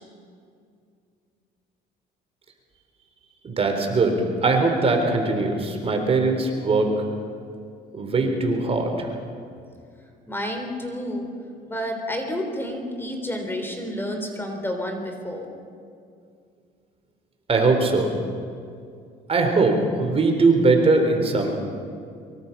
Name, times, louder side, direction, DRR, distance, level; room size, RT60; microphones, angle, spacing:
voice 1, 3.4-6.9 7.9-9.1 17.5-18.1 19.3-21.7, right 3 dB, 35° right, 4 dB, 3.9 m, -21 dB
voice 2, 10.3-11.3 11.7-15.5, left 1 dB, 15° left, 4 dB, 3.8 m, -30 dB
24.0 x 23.5 x 5.9 m, 2.3 s
cardioid pair, 110°, 17 cm